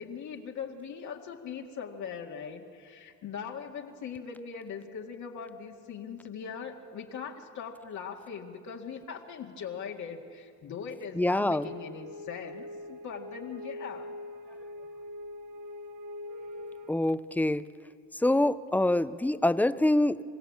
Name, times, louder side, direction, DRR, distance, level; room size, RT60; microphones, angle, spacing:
voice 1, 0.0-14.1, left 6 dB, 75° left, 1 dB, 2.1 m, -40 dB
voice 2, 11.2-11.7 16.9-17.6 18.2-20.2, left 1 dB, 5° left, 14 dB, 0.7 m, -25 dB
sound 1, 11.6-16.9, left 1 dB, 85° right, 1.1 m, -43 dB
26.5 x 16.0 x 8.6 m, 2.2 s
cardioid pair, 90°, 30 cm